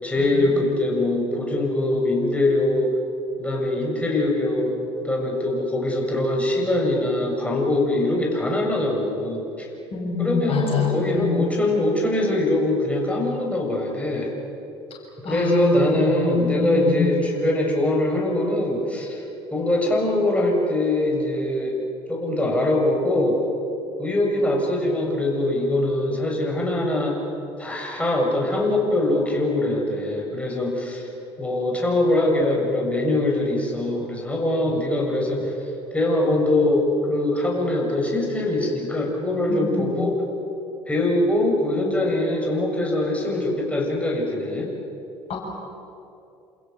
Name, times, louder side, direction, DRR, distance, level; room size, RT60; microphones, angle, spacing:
voice 1, 0.0-2.9 3.4-9.7 10.2-14.3 15.3-19.2 19.5-21.8 22.1-23.4 24.0-27.2 27.6-31.1 31.4-35.5 35.9-40.2 40.9-44.7, left 1 dB, 10° left, -1 dB, 7.3 m, -22 dB
voice 2, 9.9-11.4 15.2-17.1 39.5-39.9 45.3-45.4, left 6 dB, 45° left, 0 dB, 6.4 m, -25 dB
28.5 x 28.0 x 7.3 m, 2.8 s
hypercardioid pair, 60°, 14 cm